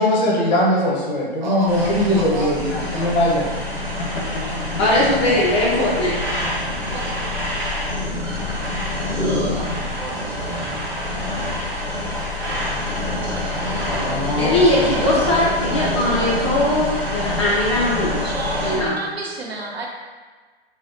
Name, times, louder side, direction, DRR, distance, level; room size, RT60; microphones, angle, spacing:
voice 1, 0.0-3.5 3.9-4.4 13.4-14.7, left 1 dB, 45° left, -4 dB, 0.8 m, -21 dB
voice 2, 0.6-1.4 18.2-19.9, right 2 dB, 80° right, -1 dB, 0.6 m, -35 dB
voice 3, 1.4-3.2 4.3-4.7 5.9-6.1 6.9-8.2 9.3-10.9, right 2 dB, 45° right, -4 dB, 0.8 m, -35 dB
sound 1, 1.7-18.7, left 1 dB, 10° right, 1.0 m, -26 dB
voice 4, 4.8-6.2 14.4-18.2 18.6-19.0, left 1 dB, 30° left, -5 dB, 0.4 m, -19 dB
3.3 x 2.0 x 2.5 m, 1.4 s
figure-of-eight pair, 115°, 31 cm